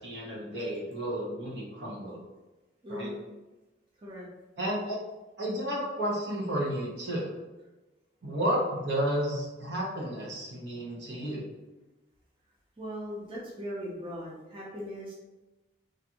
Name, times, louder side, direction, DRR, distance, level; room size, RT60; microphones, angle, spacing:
voice 1, 0.0-2.2 2.9-3.1 4.6-5.0 5.4-7.3 8.2-11.5, equal, 75° right, -4 dB, 0.9 m, -32 dB
voice 2, 2.8-3.2 4.0-4.3 12.8-15.1, equal, 30° right, -5 dB, 0.5 m, -39 dB
3.2 x 2.5 x 2.8 m, 1.1 s
head